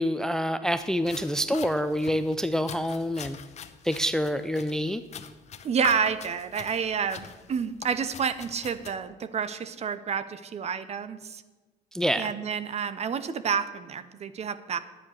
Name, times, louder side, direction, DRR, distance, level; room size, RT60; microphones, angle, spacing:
voice 1, 0.0-3.4 3.8-5.0 11.9-12.3, equal, 5° left, 12 dB, 0.4 m, -27 dB
sound 1, 0.8-8.9, left 8 dB, 40° left, 0.8 m, -43 dB
voice 2, 5.6-11.4 12.1-14.8, right 7 dB, 40° right, 14 dB, 0.8 m, -29 dB
11.0 x 9.0 x 6.4 m, 1.3 s
cardioid pair, 110°, 17 cm